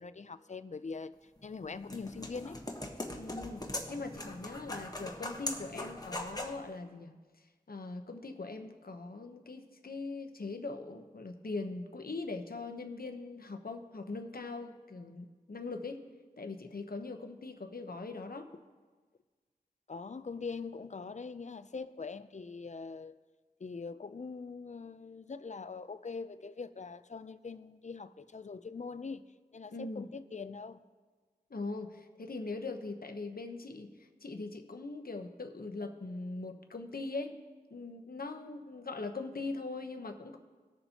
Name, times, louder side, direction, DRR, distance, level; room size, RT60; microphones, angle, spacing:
voice 1, 0.0-2.6 19.9-23.2 23.6-29.3 29.5-30.8, left 4 dB, 50° left, 13 dB, 0.4 m, -43 dB
sound 1, 1.4-6.6, left 1 dB, 25° left, 1.1 m, -41 dB
voice 2, 3.2-7.1 7.7-16.0 16.4-18.5 29.7-30.1 31.5-37.3 37.7-40.4, left 3 dB, 70° left, 6 dB, 0.9 m, -41 dB
19.0 x 6.9 x 2.9 m, 1.4 s
wide cardioid pair, 45°, 16 cm